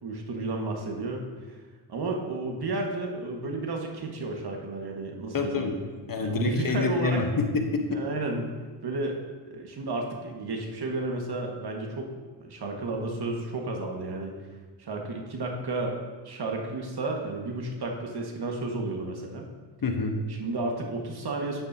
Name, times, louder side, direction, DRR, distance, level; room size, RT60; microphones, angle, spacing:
voice 1, 0.0-1.6 1.9-5.7 6.2-7.2 7.9-8.4 8.8-9.2 9.5-12.1 12.4-14.3 14.8-19.4 20.3-21.6, right 2 dB, 50° right, 1 dB, 1.8 m, -32 dB
voice 2, 5.3-5.8 6.1-8.0 19.8-20.2, left 4 dB, 45° left, 4 dB, 1.2 m, -27 dB
9.9 x 8.9 x 2.8 m, 1.4 s
supercardioid pair, 60°, 49 cm